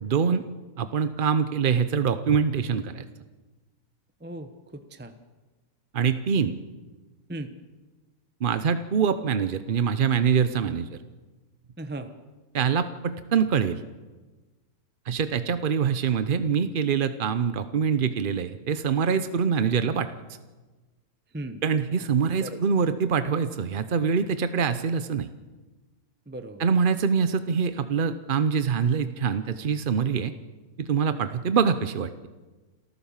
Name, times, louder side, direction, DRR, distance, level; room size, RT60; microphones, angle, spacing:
voice 1, 0.1-0.5 0.8-3.0 5.9-6.5 8.4-11.0 12.5-13.8 15.1-20.1 21.6-25.3 26.6-30.3 30.8-32.3, right 6 dB, 55° right, 11 dB, 0.6 m, -24 dB
voice 2, 4.2-5.1 7.3-7.5 11.8-12.1 21.3-21.6 22.2-22.6 26.3-26.7, right 1 dB, 10° right, 8 dB, 0.8 m, -37 dB
28.0 x 14.0 x 7.3 m, 1.2 s
omnidirectional pair, 1.8 m